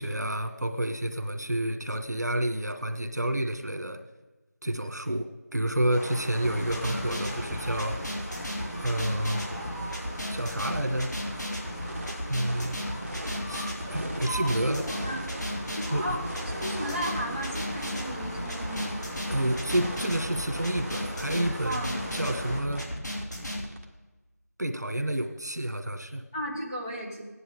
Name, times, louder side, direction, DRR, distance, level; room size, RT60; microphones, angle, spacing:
voice 1, 0.0-4.0 4.6-8.0 8.8-9.4 10.3-11.1 12.3-12.9 13.5-14.8 15.9-16.2 19.3-22.9 24.6-26.2, right 1 dB, 75° right, 7 dB, 1.8 m, -29 dB
sound 1, 5.9-22.6, equal, 60° left, 4.4 m, -39 dB
sound 2, 6.4-23.6, equal, 90° left, 3.3 m, -35 dB
sound 3, 11.8-12.1 12.4-14.2 14.4-15.6 16.0-18.9 19.3-21.7 21.9-22.3 22.7-23.8, right 1 dB, 45° right, 1.7 m, -42 dB
voice 2, 14.1-15.3 15.7-18.9 21.6-22.0 26.3-27.2, equal, 15° left, -7 dB, 1.7 m, -35 dB
16.5 x 10.5 x 3.9 m, 1.2 s
figure-of-eight pair, 180°, 9 cm